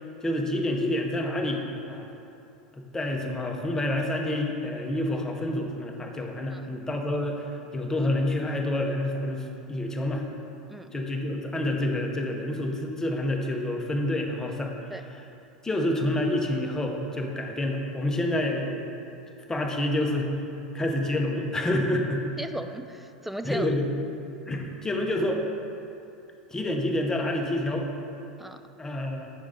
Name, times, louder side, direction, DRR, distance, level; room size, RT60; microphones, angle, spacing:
voice 1, 0.2-2.1 2.7-10.2 10.9-14.7 15.6-18.9 19.5-20.3 20.7-22.2 23.4-23.9 24.5-25.4 26.5-27.9 28.8-29.3, left 1 dB, 15° left, 2 dB, 0.9 m, -28 dB
voice 2, 22.4-23.7 28.4-28.6, right 1 dB, 5° right, 8 dB, 0.3 m, -36 dB
8.5 x 6.2 x 3.6 m, 2.7 s
figure-of-eight pair, 80°, 4 cm